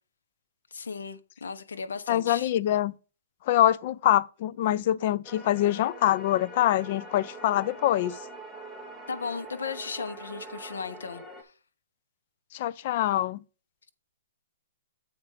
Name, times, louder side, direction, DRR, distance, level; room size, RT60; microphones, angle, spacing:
voice 1, 0.7-2.5 9.1-11.2, left 5 dB, 85° left, 1.0 m, -36 dB
voice 2, 2.1-2.9 3.5-8.2 12.5-13.4, left 12 dB, 40° left, 0.4 m, -24 dB
sound 1, 5.2-11.4, right 2 dB, 5° left, 1.1 m, -44 dB
8.0 x 4.8 x 4.9 m
hypercardioid pair, 155°, 0 cm